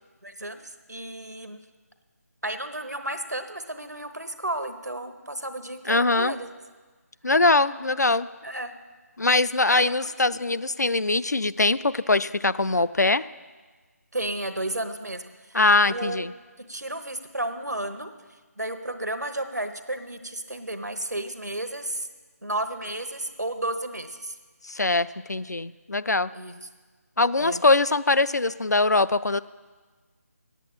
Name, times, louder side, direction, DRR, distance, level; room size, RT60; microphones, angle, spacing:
voice 1, 0.2-1.6 2.4-6.5 7.8-7.9 8.4-8.7 9.7-9.9 10.3-10.5 14.1-15.6 15.9-16.2 16.6-18.1 18.6-22.1 22.4-24.4 26.3-26.7 27.4-27.6, right 1 dB, 85° right, 8 dB, 1.0 m, -33 dB
voice 2, 5.9-6.3 7.2-8.3 9.2-13.3 15.5-16.3 24.6-26.3 27.2-29.4, left 3 dB, 85° left, 16 dB, 0.4 m, -22 dB
8.8 x 8.2 x 7.4 m, 1.4 s
figure-of-eight pair, 155°, 9 cm